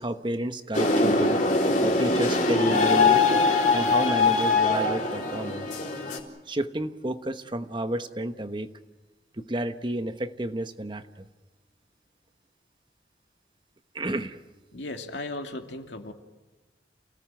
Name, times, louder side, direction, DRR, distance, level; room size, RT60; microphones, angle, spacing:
voice 1, 0.0-1.4 1.8-3.2 3.7-5.7 6.5-8.7 9.4-11.3 13.9-14.4, right 1 dB, 25° right, 9 dB, 1.1 m, -31 dB
sound 1, 0.7-6.2, left 3 dB, 45° left, 3.7 m, -22 dB
voice 2, 14.7-16.1, left 2 dB, 85° left, 4 dB, 2.6 m, -36 dB
29.5 x 18.0 x 7.8 m, 1.3 s
head